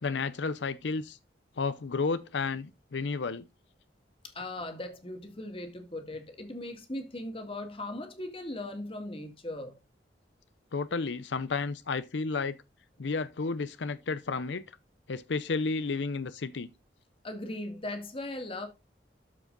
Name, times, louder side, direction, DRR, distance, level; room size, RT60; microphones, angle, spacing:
voice 1, 0.0-1.2 1.6-3.5 10.7-12.6 13.0-14.6 15.1-16.7, left 4 dB, 85° left, 0.6 m, -32 dB
voice 2, 4.2-9.8 17.2-18.7, left 1 dB, 30° left, 2.0 m, -38 dB
13.0 x 5.0 x 3.8 m
head